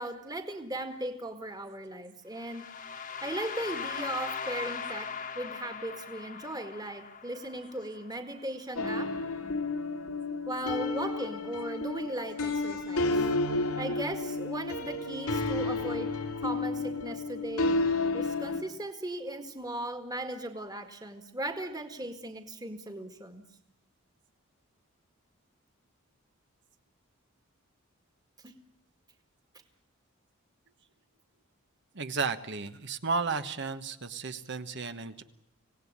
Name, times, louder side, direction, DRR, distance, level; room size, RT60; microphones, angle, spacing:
voice 1, 0.0-2.6 3.2-5.1 5.4-9.1 10.5-13.3 13.8-16.1 16.4-17.8 18.1-23.4 28.4-28.5, right 1 dB, 20° right, 7 dB, 1.9 m, -37 dB
sound 1, 2.4-8.3, left 6 dB, 40° left, 1.5 m, -39 dB
sound 2, 8.8-18.6, left 3 dB, 90° left, 2.7 m, -31 dB
voice 2, 31.9-35.2, right 4 dB, 55° right, 10 dB, 1.3 m, -33 dB
26.0 x 17.5 x 9.8 m, 0.78 s
head